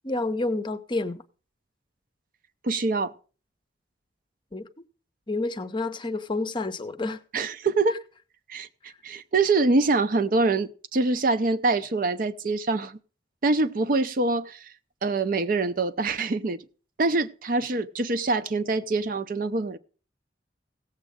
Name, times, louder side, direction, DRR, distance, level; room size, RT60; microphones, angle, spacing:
voice 1, 0.0-1.2 4.5-4.7 5.3-7.2, left 2 dB, 25° left, 0.6 m, -29 dB
voice 2, 2.6-3.1 7.3-8.0 8.5-13.0 13.4-14.7 15.0-16.6 17.0-19.8, right 3 dB, 50° right, 0.6 m, -25 dB
17.0 x 7.4 x 3.6 m
head